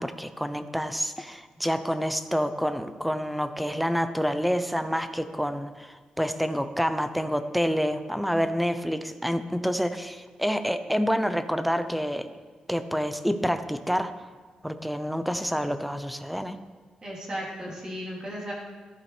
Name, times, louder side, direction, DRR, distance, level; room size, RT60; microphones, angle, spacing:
voice 1, 0.0-12.3 12.7-14.1 14.6-16.6, equal, ahead, 9 dB, 0.6 m, -28 dB
voice 2, 17.0-18.5, equal, 35° right, -5 dB, 3.5 m, -35 dB
14.5 x 12.0 x 3.3 m, 1.4 s
wide cardioid pair, 135°, 2 cm